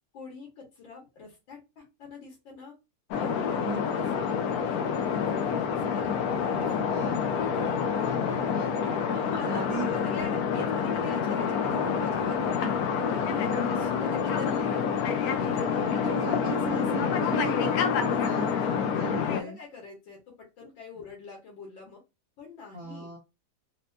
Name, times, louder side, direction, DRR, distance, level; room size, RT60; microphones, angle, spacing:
voice 1, 0.1-2.7 3.1-6.2 6.5-6.9 7.5-8.3 9.1-12.8 13.1-14.8 15.1-16.0 16.7-17.2 18.3-18.9 19.2-22.0 22.4-23.1, left 4 dB, 90° left, -2 dB, 2.0 m, -45 dB
sound 1, 3.1-19.4, left 6 dB, 70° left, 0.9 m, -27 dB
voice 2, 6.9-7.3 8.0-8.7 9.4-10.2 13.4-13.9 15.6-19.6 22.7-23.2, right 5 dB, 65° right, 0 dB, 1.0 m, -37 dB
4.3 x 2.1 x 2.6 m, 0.25 s
omnidirectional pair, 2.0 m